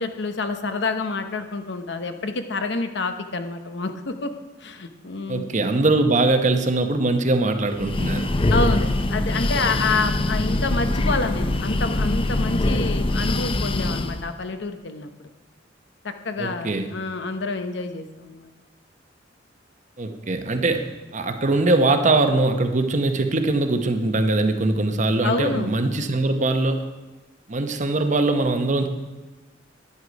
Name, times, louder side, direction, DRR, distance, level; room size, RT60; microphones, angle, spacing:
voice 1, 0.0-4.3 4.6-5.5 8.5-15.3 16.2-18.5 25.2-25.7, left 3 dB, 65° left, 8 dB, 0.9 m, -28 dB
voice 2, 5.3-8.3 16.4-16.9 20.0-26.8 27.5-28.9, right 2 dB, 40° right, 7 dB, 0.9 m, -21 dB
Breathing, 7.7-14.3, left 2 dB, 30° left, 0.5 m, -23 dB
11.0 x 9.8 x 5.2 m, 1.1 s
head